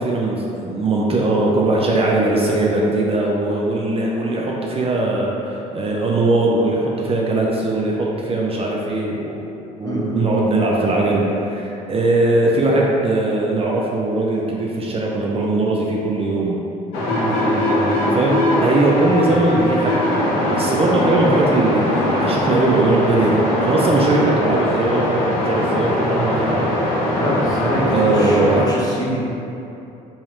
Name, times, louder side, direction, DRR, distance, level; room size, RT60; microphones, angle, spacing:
voice 1, 0.0-9.4 9.8-16.6 17.3-26.7 27.9-28.7, right 2 dB, 35° right, -3 dB, 0.5 m, -20 dB
voice 2, 9.8-10.2 17.0-17.5 27.1-29.2, equal, 20° left, -6 dB, 1.0 m, -25 dB
sound 1, 16.9-28.6, left 1 dB, 80° left, 0.7 m, -21 dB
3.6 x 3.1 x 3.0 m, 2.8 s
supercardioid pair, 70°, 17 cm